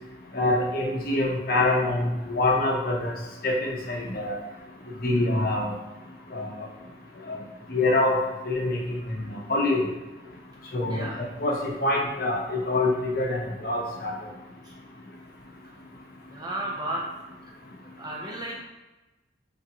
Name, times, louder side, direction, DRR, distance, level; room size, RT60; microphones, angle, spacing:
voice 1, 0.3-3.1 3.4-4.4 5.0-5.7 6.3-6.5 7.3-7.4 7.7-8.2 8.4-8.8 9.1-9.9 10.7-14.1, left 2 dB, 50° left, -1 dB, 0.8 m, -25 dB
voice 2, 10.9-11.2 14.6-14.7 16.3-17.0 18.0-18.6, right 1 dB, 20° right, -3 dB, 0.7 m, -33 dB
3.8 x 3.6 x 2.9 m, 1.1 s
head